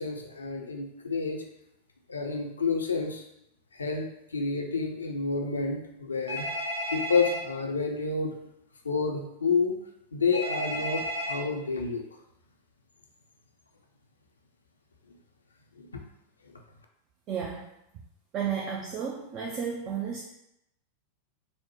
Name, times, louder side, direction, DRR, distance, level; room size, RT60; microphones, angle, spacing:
voice 1, 0.0-1.4 2.1-3.2 3.7-6.5 6.9-8.3 8.8-9.8 10.1-12.0 15.8-15.9, left 4 dB, 75° left, 2 dB, 0.5 m, -29 dB
Telephone, 6.3-7.4 10.3-11.4, equal, 65° right, 0.8 m, -32 dB
voice 2, 17.3-17.7 18.3-20.2, right 7 dB, 35° right, -1 dB, 0.4 m, -32 dB
4.1 x 2.1 x 3.0 m, 0.81 s
figure-of-eight pair, 90°, 0 cm